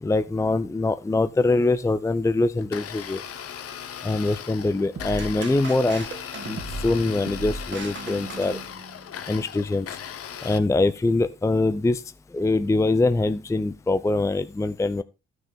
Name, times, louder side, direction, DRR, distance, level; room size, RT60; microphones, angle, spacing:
voice 1, 0.0-3.2 4.0-6.1 6.4-8.6 9.3-9.9 10.4-12.0 12.3-15.0, left 2 dB, 10° left, 0.6 m, -23 dB
Domestic sounds home sounds, 2.6-10.6, left 8 dB, 50° left, 1.0 m, -38 dB
sound 1, 5.0-9.1, right 3 dB, 40° right, 1.8 m, -36 dB
13.0 x 6.3 x 3.6 m
hypercardioid pair, 55°, 30 cm